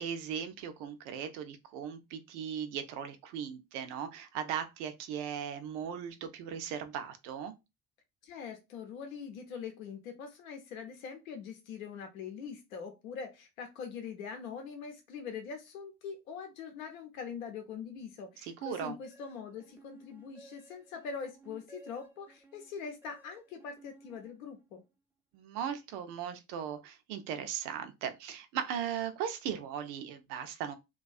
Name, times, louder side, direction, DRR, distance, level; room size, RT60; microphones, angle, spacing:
voice 1, 0.0-7.5 18.4-18.9 25.3-30.8, right 8 dB, 60° right, 0.6 m, -38 dB
voice 2, 8.2-24.8, left 6 dB, 75° left, 0.6 m, -43 dB
sound 1, 19.0-24.8, right 2 dB, 5° right, 0.4 m, -57 dB
2.3 x 2.2 x 2.4 m
figure-of-eight pair, 55°, 42 cm